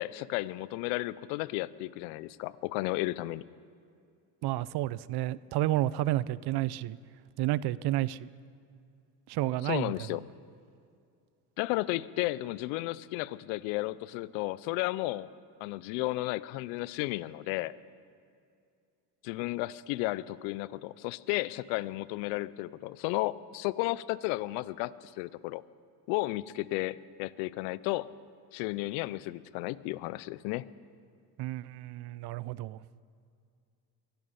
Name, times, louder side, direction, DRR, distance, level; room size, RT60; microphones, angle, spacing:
voice 1, 0.0-3.4 9.6-10.2 11.6-15.3 15.6-17.7 19.2-25.6 26.1-28.1 28.5-30.7, left 19 dB, 80° left, 19 dB, 0.6 m, -33 dB
voice 2, 4.4-7.0 7.4-8.3 9.3-10.1 31.4-32.8, right 15 dB, 60° right, 20 dB, 0.6 m, -31 dB
23.0 x 10.5 x 5.7 m, 2.3 s
supercardioid pair, 70°, 44 cm